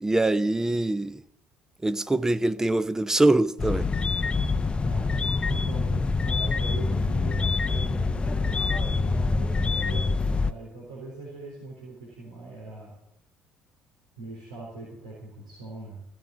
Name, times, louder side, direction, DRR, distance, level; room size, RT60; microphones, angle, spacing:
voice 1, 0.0-1.2 1.8-3.9, right 2 dB, 10° right, 0.7 m, -23 dB
sound 1, 3.6-10.5, left 4 dB, 25° left, 0.6 m, -25 dB
voice 2, 4.8-13.0 14.2-16.1, right 2 dB, 80° right, 4.0 m, -41 dB
16.5 x 6.3 x 8.2 m
figure-of-eight pair, 55°, 4 cm